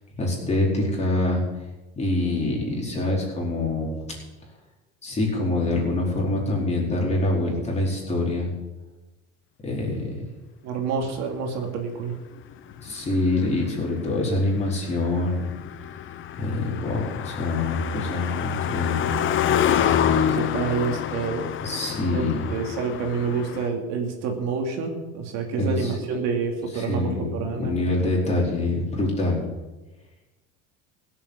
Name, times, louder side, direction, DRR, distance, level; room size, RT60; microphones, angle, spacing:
voice 1, 0.2-1.4 2.0-4.0 5.0-8.5 9.6-10.2 12.8-15.4 16.4-19.1 21.6-22.4 25.6-26.0 26.7-27.3 27.6-29.4, left 2 dB, 20° left, -2 dB, 4.7 m, -25 dB
voice 2, 10.6-12.1 20.1-21.5 22.1-27.7, right 5 dB, 65° right, 3 dB, 2.7 m, -28 dB
Car passing by, 12.5-23.7, left 9 dB, 40° left, 0.9 m, -27 dB
16.5 x 7.5 x 8.1 m, 1.1 s
cardioid pair, 130°, 29 cm